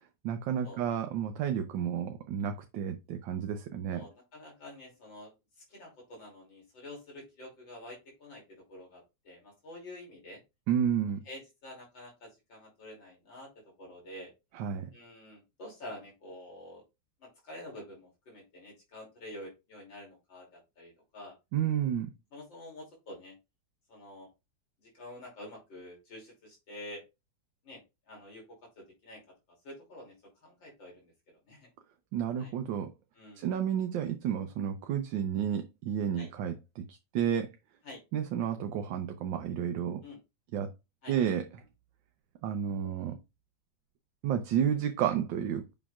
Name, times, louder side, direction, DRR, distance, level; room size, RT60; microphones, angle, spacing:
voice 1, 0.2-4.0 10.7-11.2 14.6-14.8 21.5-22.1 32.1-32.9 33.4-36.8 37.1-37.5 38.1-40.0 40.5-40.7 41.1-41.5 42.4-43.1 44.2-45.7, right 9 dB, 80° right, 1.5 m, -31 dB
voice 2, 3.9-5.3 5.7-8.4 8.7-10.4 11.3-13.5 13.8-14.3 14.9-16.8 17.2-21.4 22.3-23.4 23.9-24.3 24.9-27.0 27.6-27.8 28.1-28.4 28.8-29.2 29.6-30.1 30.4-31.1 31.5-31.7 32.4-32.5 33.1-33.5 36.1-36.3 37.8-38.0 40.0-40.2 41.0-41.2, left 1 dB, 80° left, 3.5 m, -48 dB
7.2 x 6.0 x 2.4 m
omnidirectional pair, 2.0 m